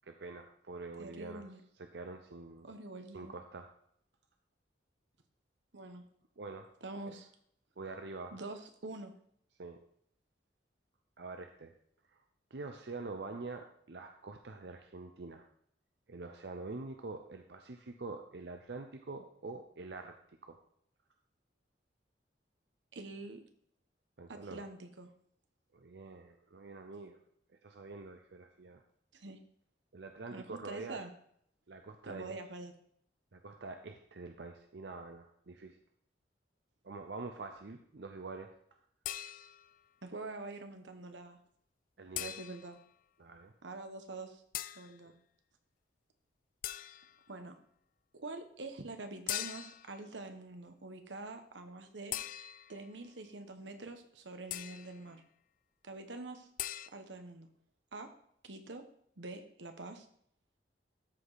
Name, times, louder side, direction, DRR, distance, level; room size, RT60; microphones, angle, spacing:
voice 1, 0.0-1.5 1.8-2.7 3.1-3.7 6.4-6.7 7.0-7.1 7.8-8.4 9.6-9.8 11.2-11.7 12.1-12.2 12.5-15.5 16.1-20.6 24.2-24.6 25.7-27.2 27.6-28.8 29.9-31.0 31.7-32.4 33.3-35.8 36.8-38.5 42.0-42.3 43.2-43.5, right 3 dB, 65° right, 5 dB, 0.7 m, -45 dB
voice 2, 1.0-1.6 2.6-3.3 5.7-6.0 6.8-7.3 8.3-9.1 22.9-23.4 24.3-25.1 29.1-29.4 30.3-31.1 32.0-32.7 40.0-41.4 42.2-42.8 43.6-44.4 44.7-45.1 47.3-47.6 48.1-52.2 52.7-55.2 55.8-56.5 56.9-57.5 57.9-58.1 58.4-58.8 59.2-60.1, right 2 dB, 90° right, 7 dB, 1.1 m, -45 dB
sound 1, 39.1-39.8 42.2-42.8 44.5-44.9 46.6-47.2 49.3-49.9 52.1-52.8 54.5-55.0 56.6-56.9, left 13 dB, 50° left, 0.3 m, -41 dB
13.5 x 5.0 x 4.1 m, 0.67 s
head